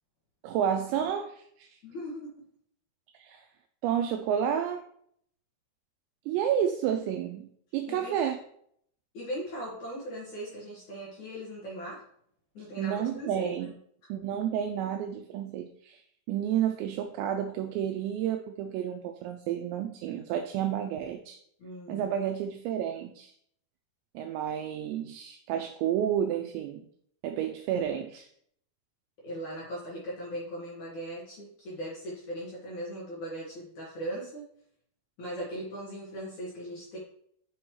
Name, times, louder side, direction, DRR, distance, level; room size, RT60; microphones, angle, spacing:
voice 1, 0.4-1.8 3.1-3.4 3.8-4.8 6.3-8.4 12.8-13.7 14.1-16.0 16.3-21.4 21.9-23.3 24.2-26.9 27.2-28.3, right 9 dB, 90° right, 7 dB, 2.5 m, -30 dB
voice 2, 1.8-2.4 7.9-8.2 9.1-12.0 12.5-13.5 21.6-22.1 29.2-34.4 35.2-37.0, equal, 55° left, -5 dB, 2.3 m, -39 dB
8.4 x 6.1 x 3.1 m, 0.67 s
omnidirectional pair, 5.6 m